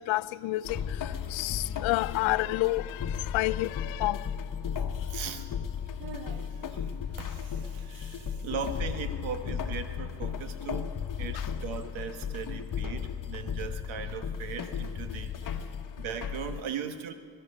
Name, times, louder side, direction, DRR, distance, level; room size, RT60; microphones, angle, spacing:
voice 1, 0.1-0.8 1.3-3.1 3.3-4.2, left 19 dB, 80° left, 17 dB, 0.5 m, -29 dB
sound 1, 0.6-16.6, left 7 dB, 45° left, 1.1 m, -35 dB
voice 2, 4.7-5.5 6.0-10.9 11.2-15.7 16.0-17.1, right 7 dB, 80° right, 9 dB, 1.3 m, -39 dB
21.5 x 12.0 x 5.5 m, 2.1 s
supercardioid pair, 70°, 47 cm